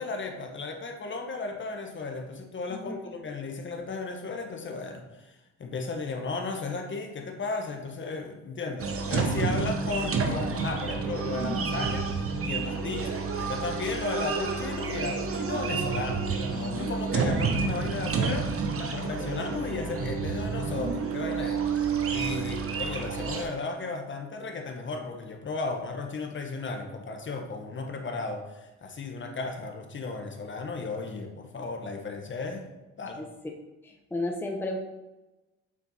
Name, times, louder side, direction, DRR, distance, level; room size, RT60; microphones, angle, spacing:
voice 1, 0.0-21.6 22.1-32.7 33.0-33.2, left 3 dB, 40° left, 4 dB, 1.1 m, -35 dB
sound 1, 8.8-23.4, right 5 dB, 45° right, 1.0 m, -29 dB
voice 2, 33.8-34.8, left 2 dB, 5° left, 2 dB, 0.8 m, -33 dB
7.4 x 4.4 x 4.1 m, 1.1 s
cardioid pair, 90°, 30 cm